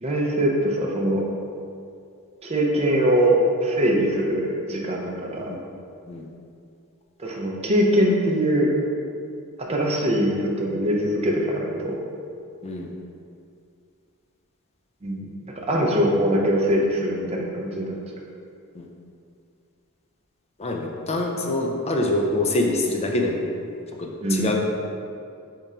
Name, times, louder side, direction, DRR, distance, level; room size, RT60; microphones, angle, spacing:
voice 1, 0.0-1.2 2.4-5.5 7.2-8.7 9.6-12.0 15.0-17.9 24.2-24.5, equal, 30° right, -2 dB, 0.6 m, -22 dB
voice 2, 20.6-23.4 24.0-24.6, left 2 dB, 30° left, 0 dB, 0.4 m, -25 dB
3.7 x 3.5 x 4.2 m, 2.5 s
head